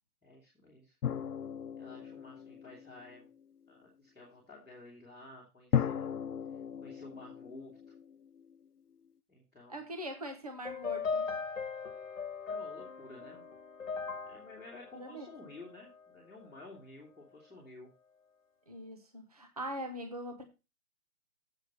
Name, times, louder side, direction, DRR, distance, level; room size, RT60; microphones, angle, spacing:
voice 1, 0.2-0.9 1.7-3.3 3.7-6.1 6.8-7.8 9.3-9.7 12.4-13.5 14.2-17.9, left 2 dB, ahead, -18 dB, 1.0 m, -52 dB
sound 1, 1.0-3.3 5.7-8.6, left 9 dB, 85° left, 0.8 m, -36 dB
voice 2, 9.7-11.3 15.0-15.3 18.7-20.4, equal, 25° right, 5 dB, 0.8 m, -42 dB
sound 2, 10.7-16.0, left 5 dB, 55° left, 1.3 m, -39 dB
7.9 x 4.4 x 6.9 m, 0.27 s
hypercardioid pair, 175°, 44 cm